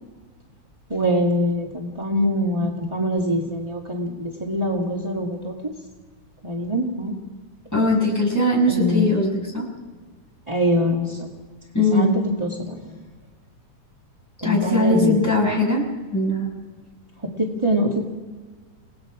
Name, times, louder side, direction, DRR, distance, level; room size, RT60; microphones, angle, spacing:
voice 1, 0.9-5.5 6.4-7.1 8.7-9.0 10.5-11.3 11.9-13.0 14.4-15.2 17.4-18.0, equal, 15° right, -2 dB, 1.2 m, -24 dB
voice 2, 7.7-9.7 11.7-12.2 14.4-15.9 16.1-16.5, left 1 dB, 5° left, -3 dB, 6.0 m, -20 dB
29.5 x 18.0 x 5.0 m, 1.4 s
omnidirectional pair, 3.7 m